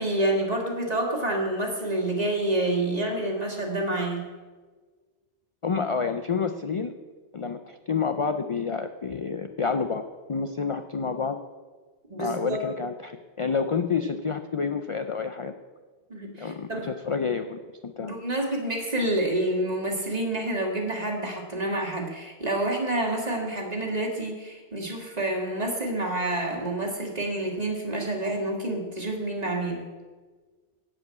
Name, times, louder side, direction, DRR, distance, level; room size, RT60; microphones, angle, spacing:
voice 1, 0.0-4.2 12.1-12.6 16.1-16.9 18.0-29.9, right 1 dB, 35° right, 0 dB, 2.0 m, -28 dB
voice 2, 5.6-6.9 7.3-10.0 10.3-11.4 12.2-15.5 16.4-18.1, left 5 dB, 50° left, 8 dB, 0.4 m, -29 dB
12.5 x 5.1 x 8.5 m, 1.4 s
omnidirectional pair, 1.2 m